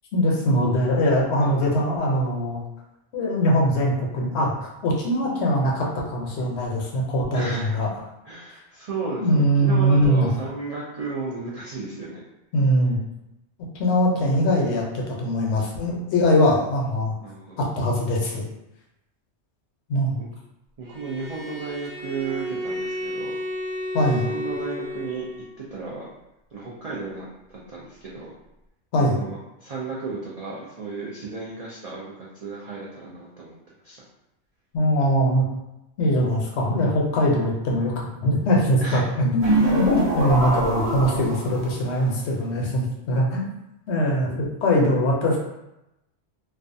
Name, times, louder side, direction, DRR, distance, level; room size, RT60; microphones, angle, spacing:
voice 1, 0.1-2.6 3.1-4.5 4.8-7.9 9.2-10.3 12.5-13.0 13.7-17.1 17.6-18.5 19.9-20.2 23.9-24.3 28.9-29.2 34.7-35.5 36.0-37.9 38.2-43.5 43.9-45.4, equal, 70° left, -1 dB, 0.8 m, -22 dB
voice 2, 7.3-7.7 8.2-12.2 17.2-17.7 20.2-20.3 20.8-23.4 24.1-25.3 25.6-26.0 26.5-28.3 29.0-33.6 33.8-34.0 38.8-39.1 44.3-44.4, right 4 dB, 65° right, -6 dB, 0.3 m, -34 dB
Bowed string instrument, 20.8-25.6, equal, 85° right, 1.0 m, -32 dB
sound 1, 39.4-41.8, right 2 dB, 40° right, 0.8 m, -24 dB
2.4 x 2.2 x 2.6 m, 0.90 s
omnidirectional pair, 1.2 m